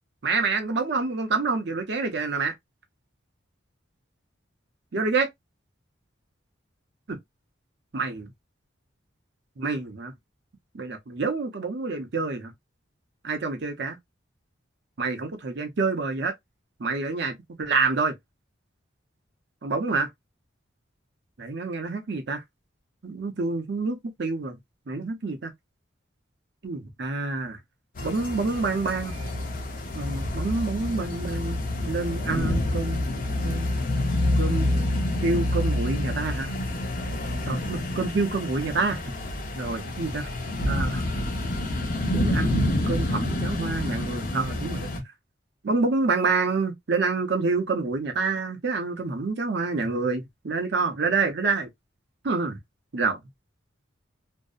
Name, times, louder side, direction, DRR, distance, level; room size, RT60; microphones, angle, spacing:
voice 1, 0.2-2.5 4.9-5.3 7.1-7.2 7.9-8.2 9.6-10.1 10.7-12.5 13.2-14.0 15.0-16.3 16.8-18.1 19.6-20.1 21.4-22.4 23.0-24.6 24.9-25.5 26.6-27.6 28.0-29.1 29.9-33.0 33.4-33.7 34.4-34.7 35.2-36.5 37.5-39.0 39.6-40.3 40.7-41.0 42.1-44.9 45.6-51.7 52.2-52.6 52.9-53.2, right 4 dB, 55° right, 0.6 m, -27 dB
sound 1, 28.0-45.0, left 1 dB, 45° left, 0.6 m, -28 dB
2.6 x 2.0 x 2.3 m
head